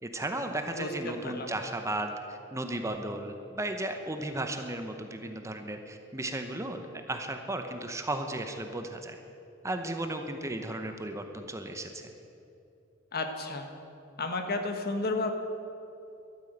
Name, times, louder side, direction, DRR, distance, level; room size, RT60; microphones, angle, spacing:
voice 1, 0.0-9.2 9.6-12.1, right 1 dB, 15° right, 5 dB, 0.8 m, -35 dB
voice 2, 13.1-13.7 14.2-15.3, left 3 dB, 50° left, 5 dB, 1.4 m, -32 dB
13.0 x 9.1 x 7.9 m, 2.8 s
head